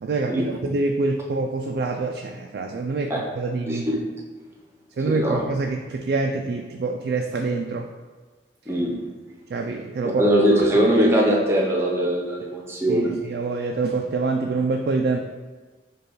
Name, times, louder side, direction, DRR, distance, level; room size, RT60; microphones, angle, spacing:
voice 1, 0.0-3.9 5.0-7.9 9.5-10.2 10.5-10.7 12.9-15.2, right 3 dB, 60° right, 2 dB, 0.3 m, -26 dB
voice 2, 5.1-5.4 8.7-9.0 10.2-13.1, equal, 15° right, -2 dB, 0.7 m, -21 dB
5.0 x 2.3 x 4.5 m, 1.3 s
head